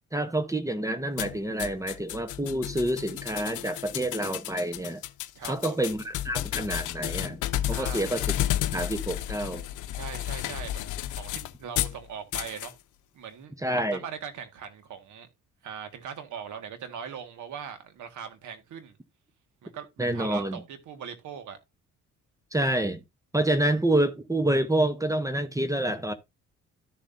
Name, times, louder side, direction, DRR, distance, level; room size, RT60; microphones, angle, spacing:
voice 1, 0.1-5.0 5.4-7.4 7.7-8.3 8.7-9.6 13.6-14.0 20.0-20.6 22.5-23.0 23.3-26.1, right 1 dB, 10° right, 0.9 m, -27 dB
sound 1, 1.2-12.0 12.3-12.7, left 13 dB, 85° left, 0.7 m, -32 dB
voice 2, 5.4-5.9 7.7-8.1 9.9-10.8 11.1-12.8 13.1-15.3 15.6-18.9 19.6-21.6, right 7 dB, 75° right, 1.8 m, -40 dB
12.5 x 7.1 x 2.7 m
cardioid pair, 90°, 30 cm